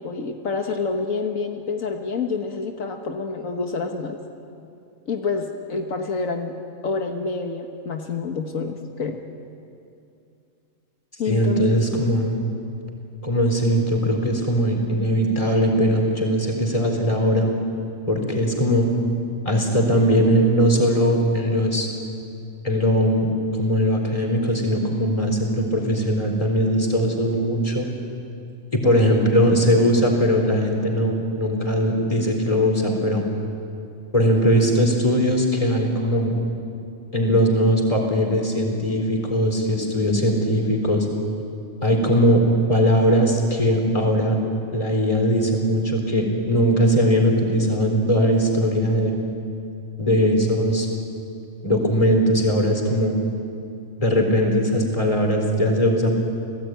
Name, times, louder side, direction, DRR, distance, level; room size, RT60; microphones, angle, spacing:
voice 1, 0.0-4.2 5.0-6.6 6.8-9.2 11.2-12.0, left 4 dB, 80° left, 3 dB, 1.8 m, -28 dB
voice 2, 11.3-12.4 13.2-17.5 18.1-18.9 19.4-21.9 22.6-27.9 28.7-33.2 34.1-36.3 37.1-41.1 41.8-42.4 42.7-44.4 44.7-49.2 50.0-50.9 51.6-53.2 54.0-56.1, equal, 25° left, 1 dB, 4.0 m, -20 dB
29.0 x 18.0 x 9.3 m, 2.5 s
omnidirectional pair, 1.4 m